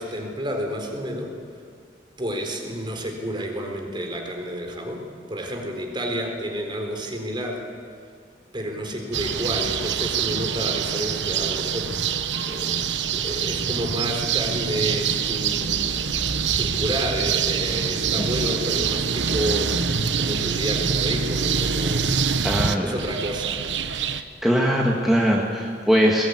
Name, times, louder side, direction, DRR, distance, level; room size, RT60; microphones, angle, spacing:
voice 1, 0.0-1.4 2.2-7.7 8.5-12.2 12.5-15.9 16.4-23.6, equal, 25° right, 3 dB, 4.0 m, -30 dB
sound 1, 9.1-24.2, right 6 dB, 85° right, 1.1 m, -25 dB
voice 2, 22.4-22.9 24.1-26.2, equal, ahead, -3 dB, 2.0 m, -21 dB
21.0 x 20.0 x 9.7 m, 2.2 s
head